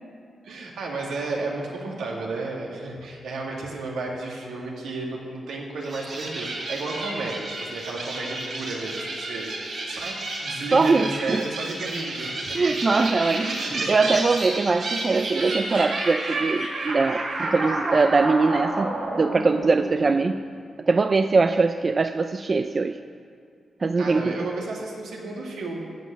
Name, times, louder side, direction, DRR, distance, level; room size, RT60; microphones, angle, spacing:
voice 1, 0.4-12.6 13.4-13.9 24.0-25.8, right 3 dB, 90° right, -2 dB, 2.1 m, -33 dB
sound 1, 5.8-20.5, right 2 dB, 65° right, 3.3 m, -31 dB
voice 2, 10.7-11.4 12.5-20.4 20.9-23.0 23.8-24.2, right 3 dB, 40° right, 9 dB, 0.4 m, -22 dB
13.0 x 6.2 x 8.1 m, 2.3 s
cardioid pair, 70°, 0 cm